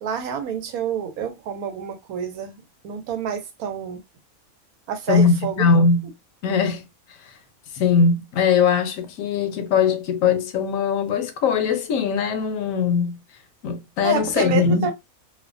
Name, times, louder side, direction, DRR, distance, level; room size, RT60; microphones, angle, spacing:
voice 1, 0.0-4.0 4.9-5.9 14.0-14.9, right 7 dB, 90° right, 1.1 m, -28 dB
voice 2, 5.1-6.1 6.4-6.8 7.7-13.2 13.6-14.9, left 5 dB, 75° left, 0.9 m, -20 dB
2.6 x 2.1 x 2.4 m
omnidirectional pair, 1.5 m